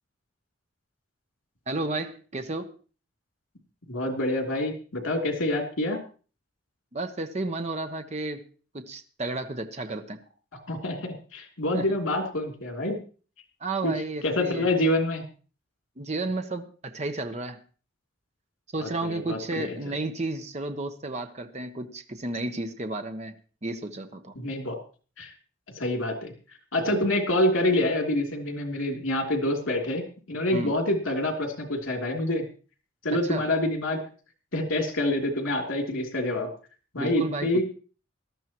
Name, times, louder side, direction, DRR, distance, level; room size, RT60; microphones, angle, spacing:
voice 1, 1.7-2.7 6.9-8.4 8.7-10.2 11.7-12.0 13.6-14.7 16.0-17.6 18.7-24.3 26.9-27.1 30.5-30.7 33.2-33.4 37.0-37.6, right 2 dB, 35° right, 7 dB, 0.9 m, -32 dB
voice 2, 3.9-6.0 10.7-13.0 13.8-13.9 14.2-15.2 18.8-19.7 24.4-24.8 25.2-25.3 25.8-26.3 26.7-32.4 33.0-34.0 34.5-36.5 36.9-37.6, left 1 dB, 80° left, 2 dB, 3.0 m, -27 dB
18.0 x 12.5 x 3.0 m, 0.38 s
head